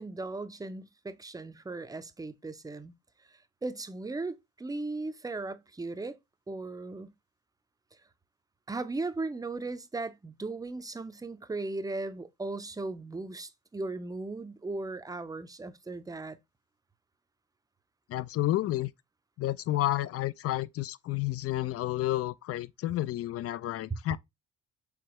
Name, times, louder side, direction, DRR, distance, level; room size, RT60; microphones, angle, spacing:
voice 1, 0.0-2.9 3.6-6.2 6.5-7.1 8.7-16.4 23.9-24.0, right 3 dB, 10° right, 0.6 m, -37 dB
voice 2, 18.1-18.9 19.4-24.2, left 15 dB, 45° left, 0.4 m, -30 dB
4.8 x 3.4 x 3.0 m
supercardioid pair, 70°, 33 cm